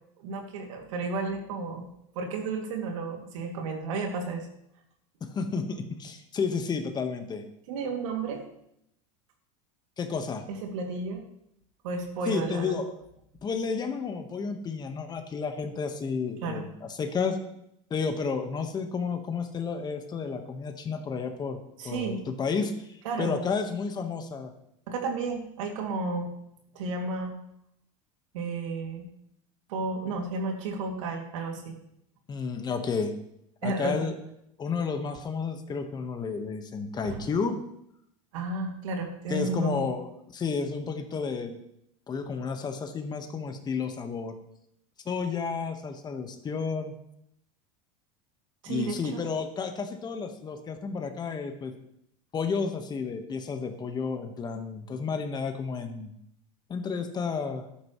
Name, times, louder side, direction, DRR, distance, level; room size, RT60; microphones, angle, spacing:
voice 1, 0.2-1.9 2.1-4.5 7.7-8.4 10.5-11.2 11.8-12.8 16.4-16.6 21.8-22.2 23.0-23.4 24.9-26.3 26.7-27.3 28.3-29.1 29.7-31.8 33.6-34.0 37.0-37.3 38.3-39.9 48.6-49.3, right 3 dB, 80° right, 2 dB, 2.6 m, -32 dB
voice 2, 5.2-7.4 10.0-10.4 12.3-12.9 13.4-17.4 17.9-21.6 21.8-24.5 32.3-33.1 33.6-34.1 34.6-37.6 39.3-41.6 42.1-44.3 45.0-46.9 48.7-51.7 52.3-56.1 56.7-57.6, left 5 dB, 25° left, 6 dB, 1.4 m, -31 dB
13.5 x 11.5 x 3.2 m, 0.75 s
supercardioid pair, 125°, 16 cm